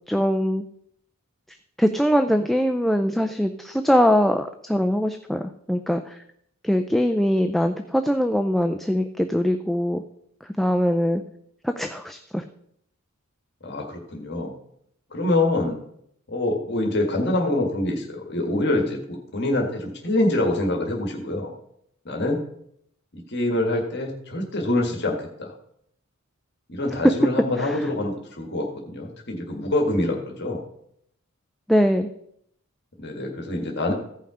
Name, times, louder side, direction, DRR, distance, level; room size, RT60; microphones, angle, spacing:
voice 1, 0.1-0.6 1.8-6.2 6.6-10.0 10.6-11.2 11.6-12.4 27.6-27.9 31.7-32.1, equal, ahead, 5 dB, 0.4 m, -22 dB
voice 2, 13.6-14.5 15.1-15.8 16.3-21.5 22.0-22.4 23.3-25.5 26.7-30.6 33.0-33.9, left 2 dB, 50° left, 2 dB, 1.6 m, -25 dB
15.0 x 5.7 x 4.9 m, 0.72 s
head